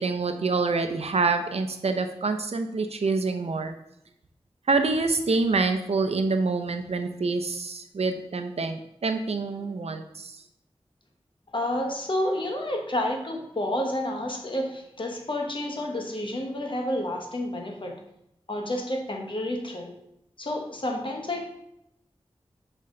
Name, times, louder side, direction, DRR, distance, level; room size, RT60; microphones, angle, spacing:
voice 1, 0.0-3.7 4.7-10.3, right 3 dB, 80° right, 7 dB, 0.6 m, -26 dB
voice 2, 11.5-18.0 18.5-20.0 20.4-21.5, left 1 dB, 50° left, 2 dB, 1.2 m, -30 dB
7.6 x 4.5 x 3.8 m, 0.81 s
wide cardioid pair, 70°, 10 cm